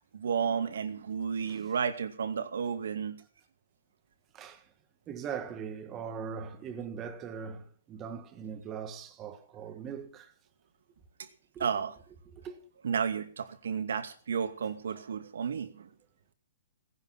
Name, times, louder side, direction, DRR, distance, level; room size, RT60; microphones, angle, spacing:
voice 1, 0.1-3.2 11.6-11.9 12.8-15.9, right 6 dB, 75° right, 2.3 m, -32 dB
voice 2, 5.1-10.3 11.5-11.7 12.3-12.6, right 7 dB, 15° right, 1.6 m, -40 dB
18.0 x 10.5 x 5.9 m
hypercardioid pair, 170°, 0 cm